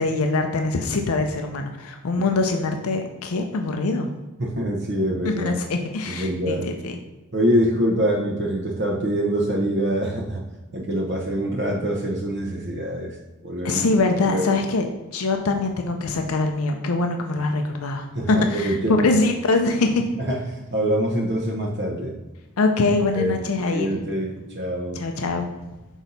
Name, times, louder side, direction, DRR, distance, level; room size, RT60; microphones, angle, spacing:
voice 1, 0.0-4.1 5.3-6.9 13.6-14.9 15.1-18.8 19.0-20.0 22.6-24.0 24.9-25.5, left 3 dB, 85° left, 4 dB, 0.6 m, -23 dB
voice 2, 4.4-5.6 6.0-6.7 7.3-10.4 10.7-13.8 14.2-14.6 18.1-19.2 20.2-22.1 23.1-23.4 23.7-25.0, equal, 55° right, -2 dB, 0.8 m, -25 dB
6.2 x 4.0 x 4.0 m, 1.1 s
head